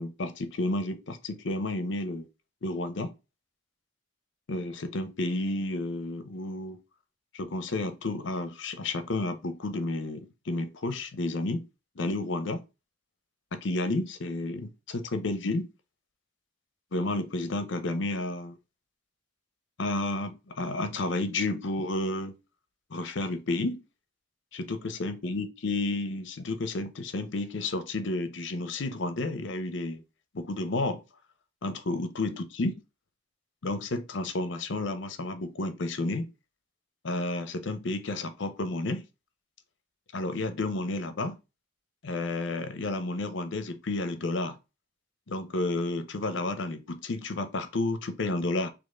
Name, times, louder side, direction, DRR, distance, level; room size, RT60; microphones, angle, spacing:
voice 1, 0.0-2.3 2.6-3.1 4.5-6.8 7.3-11.7 12.0-12.6 13.5-15.7 16.9-18.6 19.8-22.3 22.9-23.8 24.5-30.0 30.3-31.0 31.6-32.7 33.6-36.3 37.0-39.1 40.1-41.4 42.0-44.6 45.3-48.7, left 2 dB, 70° left, 0.6 m, -31 dB
4.1 x 2.9 x 3.6 m
head